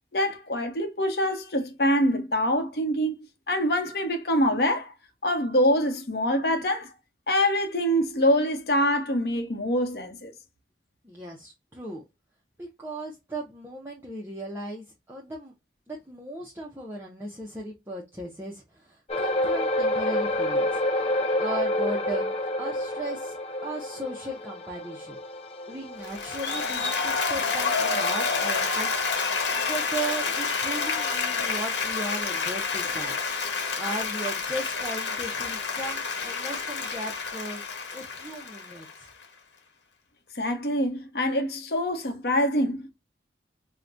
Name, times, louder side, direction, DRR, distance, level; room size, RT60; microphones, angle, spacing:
voice 1, 0.1-4.9 5.2-6.9 7.3-10.3 40.3-42.9, equal, 55° left, 0.8 m, -25 dB
voice 2, 11.0-12.0 12.6-15.5 15.9-20.8 21.4-23.4 23.6-25.2 25.7-33.2 33.8-37.6 37.9-39.1, right 2 dB, 10° right, 0.5 m, -37 dB
sound 1, 19.1-31.8 32.1-32.3 32.9-33.0, left 1 dB, 35° left, 0.5 m, -30 dB
Applause, 26.0-39.2, left 4 dB, 80° left, 1.2 m, -29 dB
4.6 x 2.1 x 2.5 m
head